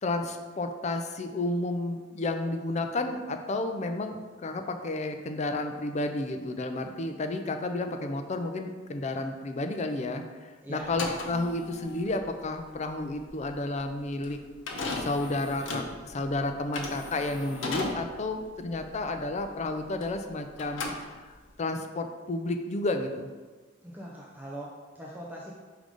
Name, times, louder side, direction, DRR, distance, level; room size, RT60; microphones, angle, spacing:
voice 1, 0.0-14.4 15.0-23.3, left 2 dB, 35° left, 6 dB, 0.4 m, -32 dB
voice 2, 10.6-10.9 23.8-25.5, right 1 dB, 10° right, -4 dB, 0.6 m, -41 dB
sound 1, 10.8-20.3 20.5-21.6, left 3 dB, 80° left, 0.8 m, -37 dB
5.1 x 3.8 x 4.9 m, 1.4 s
head